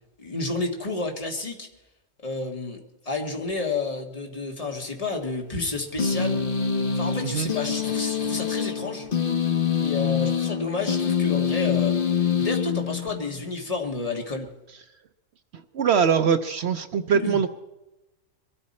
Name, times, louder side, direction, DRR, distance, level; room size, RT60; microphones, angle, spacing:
voice 1, 0.2-1.7 2.2-6.4 7.0-9.1 9.8-12.0 12.4-14.5 17.1-17.4, left 3 dB, 30° left, 1 dB, 1.7 m, -30 dB
sound 1, 6.0-13.4, left 7 dB, 45° left, 1.2 m, -25 dB
voice 2, 15.5-17.5, right 7 dB, 60° right, 9 dB, 0.9 m, -22 dB
22.5 x 13.5 x 4.2 m, 0.99 s
omnidirectional pair, 1.4 m